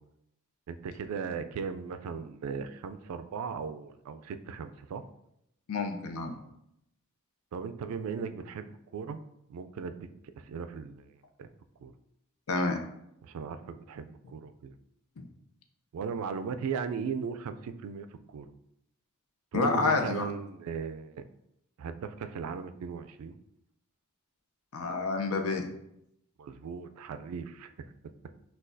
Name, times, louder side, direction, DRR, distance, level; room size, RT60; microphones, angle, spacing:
voice 1, 0.7-5.0 7.5-9.2 9.5-10.1 10.4-11.1 11.4-11.5 11.8-11.9 13.2-14.7 15.9-18.5 19.5-21.2 21.8-23.4 26.4-27.7, right 6 dB, 75° right, 11 dB, 0.3 m, -37 dB
voice 2, 5.7-6.3 12.5-12.8 15.2-15.3 19.5-20.3 24.7-25.6, left 3 dB, 75° left, 4 dB, 0.6 m, -28 dB
6.0 x 2.3 x 2.6 m, 0.79 s
head